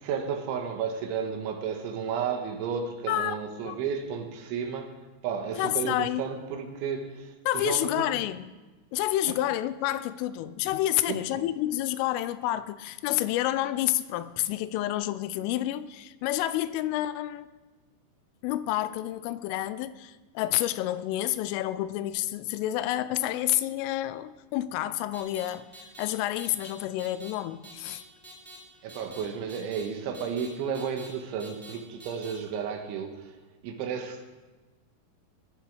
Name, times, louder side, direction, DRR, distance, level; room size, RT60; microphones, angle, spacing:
voice 1, 0.1-5.0 5.2-8.0 9.3-9.4 11.1-11.4 28.8-33.4 33.6-34.2, right 7 dB, 75° right, 3.7 m, -33 dB
voice 2, 5.6-6.2 7.5-8.4 8.9-17.5 18.4-25.7 26.0-28.0, left 14 dB, 85° left, 3.2 m, -29 dB
sound 1, 25.1-25.5 25.7-26.1 26.4-26.7 27.0-27.3 27.6-28.0 28.2-28.6 28.9-29.2 29.5-29.8 30.1-30.5 30.7-31.1 31.4-31.7 32.0-32.3, right 2 dB, ahead, 3.0 m, -47 dB
21.5 x 11.0 x 4.8 m
omnidirectional pair, 5.7 m